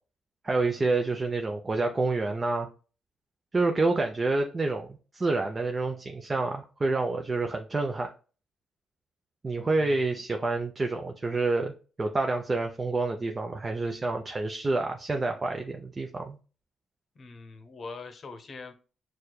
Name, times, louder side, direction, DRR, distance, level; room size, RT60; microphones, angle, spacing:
voice 1, 0.4-2.7 3.5-8.1 9.4-16.4, right 3 dB, 25° right, 3 dB, 0.5 m, -28 dB
voice 2, 9.8-10.1 17.1-18.8, left 4 dB, 45° left, 8 dB, 0.8 m, -43 dB
6.2 x 2.2 x 2.2 m, 0.36 s
cardioid pair, 90°, 0 cm